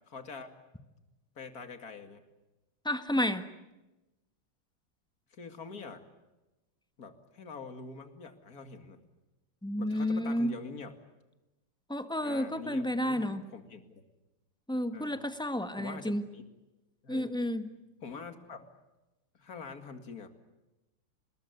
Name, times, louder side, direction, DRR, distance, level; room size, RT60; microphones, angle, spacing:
voice 1, 0.1-0.5 1.4-2.2 5.3-6.0 7.0-9.0 9.8-10.9 12.2-14.0 14.9-15.2 15.8-16.4 17.0-17.3 18.0-18.7 19.4-20.3, left 5 dB, 45° left, 7 dB, 2.6 m, -45 dB
voice 2, 2.8-3.5 9.6-10.5 11.9-13.4 14.7-16.2 17.1-17.6, left 1 dB, 5° left, 9 dB, 0.9 m, -31 dB
26.5 x 20.5 x 9.5 m, 1.0 s
omnidirectional pair, 2.4 m